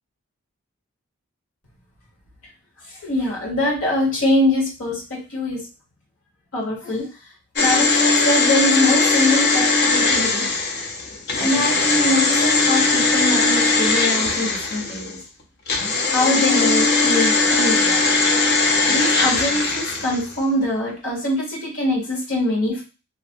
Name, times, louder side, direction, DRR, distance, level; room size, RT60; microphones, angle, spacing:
voice 1, 3.0-5.6 6.5-7.1 7.6-10.5 11.4-15.2 16.1-18.0 18.9-22.8, left 1 dB, 75° left, -3 dB, 1.2 m, -23 dB
sound 1, 7.6-15.1 15.7-20.4 20.6-20.7, left 3 dB, 50° left, 0.5 m, -19 dB
2.6 x 2.5 x 2.5 m, 0.33 s
head